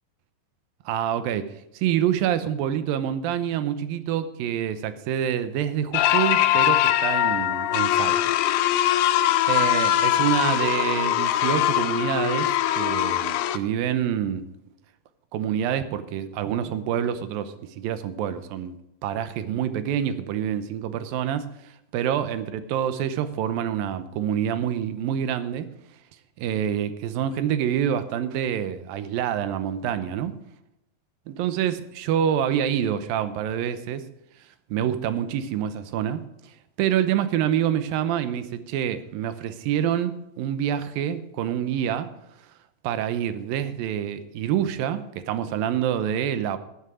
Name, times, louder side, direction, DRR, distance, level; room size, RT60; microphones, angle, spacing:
voice 1, 0.9-8.4 8.9-9.1 9.5-14.4 15.3-18.7 19.0-21.5 21.9-25.7 26.4-30.3 31.3-34.0 34.7-36.5 36.8-42.1 42.8-46.6, right 9 dB, 80° right, 11 dB, 2.6 m, -27 dB
sound 1, 5.9-13.6, left 12 dB, 85° left, 1.8 m, -22 dB
11.5 x 11.5 x 4.9 m, 0.84 s
omnidirectional pair, 4.1 m